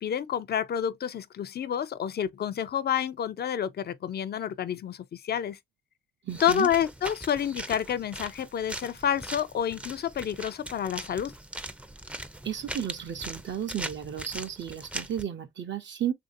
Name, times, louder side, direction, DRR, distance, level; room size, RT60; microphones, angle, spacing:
voice 1, 0.0-5.6 6.4-11.3, left 9 dB, 50° left, 0.4 m, -29 dB
voice 2, 6.2-6.7 12.4-16.1, right 9 dB, 65° right, 0.6 m, -33 dB
sound 1, 6.3-15.2, right 1 dB, 5° right, 0.4 m, -40 dB
3.1 x 2.6 x 2.5 m
cardioid pair, 75°, 21 cm